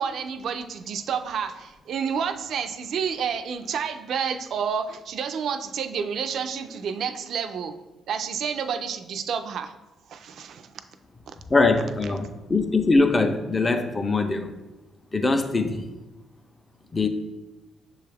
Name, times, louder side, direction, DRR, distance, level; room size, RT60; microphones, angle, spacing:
voice 1, 0.0-7.7 8.1-9.7 10.1-10.7, right 7 dB, 70° right, 8 dB, 0.3 m, -29 dB
voice 2, 11.5-14.5 15.1-15.8 16.9-17.1, left 3 dB, 25° left, 7 dB, 0.4 m, -22 dB
6.8 x 2.3 x 3.3 m, 1.1 s
cardioid pair, 90°, 0 cm